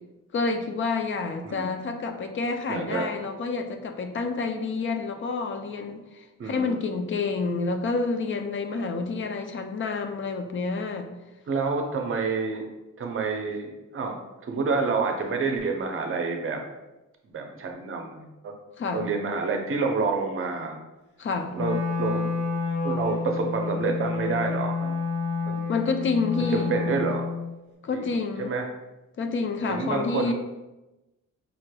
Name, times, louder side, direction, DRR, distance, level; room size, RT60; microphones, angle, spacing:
voice 1, 0.3-11.1 18.8-19.1 21.2-21.6 25.7-26.7 27.8-28.5 29.2-30.3, left 4 dB, 40° left, 6 dB, 0.4 m, -28 dB
voice 2, 2.7-3.1 6.4-6.9 11.5-12.6 13.0-14.1 14.4-16.6 17.3-18.5 18.9-20.8 21.5-22.3 22.8-25.0 25.4-25.7 26.5-27.3 27.9-28.7 29.7-30.3, right 4 dB, 45° right, 3 dB, 0.6 m, -28 dB
Wind instrument woodwind instrument, 21.5-27.5, left 4 dB, 75° left, 1.2 m, -29 dB
5.0 x 3.2 x 2.2 m, 1.0 s
wide cardioid pair, 145°, 31 cm